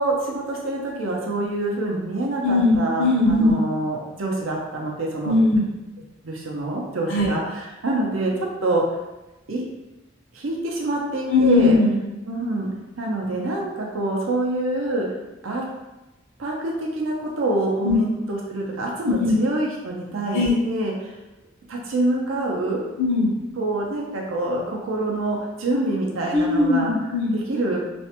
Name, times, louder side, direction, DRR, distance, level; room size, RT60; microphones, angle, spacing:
voice 1, 0.0-5.3 6.2-8.3 8.6-8.8 9.5-9.6 10.3-11.8 12.2-12.7 13.0-15.1 15.4-15.6 16.4-21.1 21.7-22.8 23.6-26.9 27.5-27.8, right 2 dB, 80° right, -1 dB, 0.6 m, -26 dB
voice 2, 2.4-3.6 5.2-5.7 7.1-7.3 11.3-12.0 17.8-18.0 19.2-19.3 20.3-20.5 23.0-23.3 26.3-27.3, left 2 dB, 75° left, -2 dB, 0.7 m, -19 dB
2.5 x 2.1 x 2.8 m, 1.0 s
head